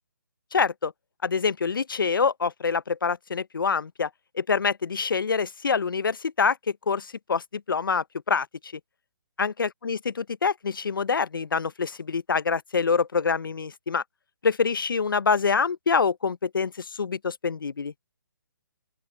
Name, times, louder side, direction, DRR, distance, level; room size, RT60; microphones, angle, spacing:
voice 1, 0.5-0.9 1.2-4.1 4.3-6.6 6.9-8.7 9.4-14.0 14.4-17.9, left 5 dB, 70° left, 0.9 m, -26 dB
open air
figure-of-eight pair, 145°, 12 cm